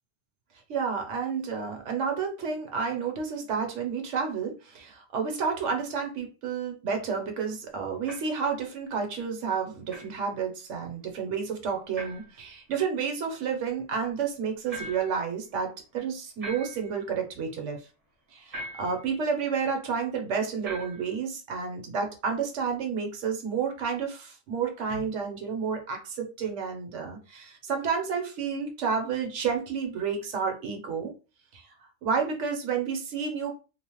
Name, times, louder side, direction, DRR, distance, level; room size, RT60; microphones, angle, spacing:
voice 1, 0.7-17.8 18.3-31.1 31.5-31.6 32.0-33.6, right 6 dB, 60° right, 3 dB, 1.0 m, -30 dB
sound 1, 8.1-8.4 9.9-10.1 11.9-12.4 14.7-15.3 16.4-17.0 18.5-19.0 20.6-21.2, right 1 dB, 30° right, 0.8 m, -41 dB
3.0 x 2.0 x 3.0 m, 0.32 s
omnidirectional pair, 1.5 m